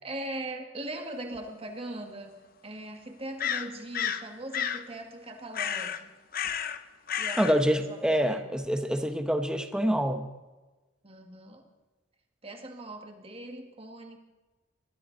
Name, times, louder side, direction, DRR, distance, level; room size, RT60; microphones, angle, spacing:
voice 1, 0.0-2.4 2.6-6.1 7.2-8.5 11.0-11.7 12.4-14.2, right 1 dB, 30° right, 4 dB, 1.8 m, -40 dB
sound 1, 1.4-1.5 3.4-4.3 4.5-4.8 5.5-6.0 6.3-6.8 7.1-7.5, left 8 dB, 50° left, 0.8 m, -31 dB
voice 2, 7.4-10.3, equal, 5° right, 7 dB, 1.0 m, -26 dB
21.0 x 13.5 x 4.0 m, 1.2 s
head